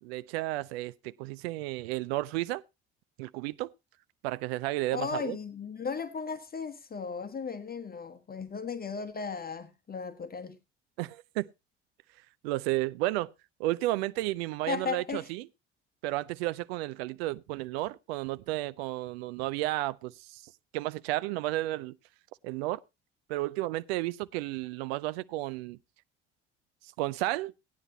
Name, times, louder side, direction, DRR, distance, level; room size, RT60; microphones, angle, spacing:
voice 1, 0.0-2.6 3.2-3.7 4.2-5.4 11.0-11.5 12.4-13.3 13.6-15.5 16.0-22.0 22.4-22.8 23.3-25.8 27.0-27.5, right 17 dB, 70° right, 0.5 m, -32 dB
voice 2, 4.9-10.6 14.6-15.3, left 5 dB, 30° left, 1.1 m, -36 dB
15.5 x 9.9 x 2.8 m
figure-of-eight pair, 55°, 32 cm